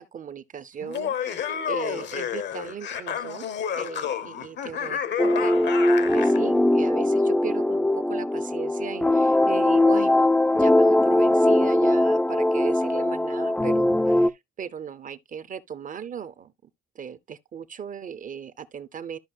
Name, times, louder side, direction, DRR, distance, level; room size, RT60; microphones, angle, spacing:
voice 1, 0.0-3.5 3.8-16.5 16.9-19.2, right 7 dB, 40° right, 0.7 m, -37 dB
Laughter, 0.8-6.4, left 8 dB, 60° left, 0.8 m, -30 dB
sound 1, 5.2-14.3, left 1 dB, 5° left, 0.4 m, -21 dB
13.0 x 5.3 x 2.2 m
cardioid pair, 90°, 20 cm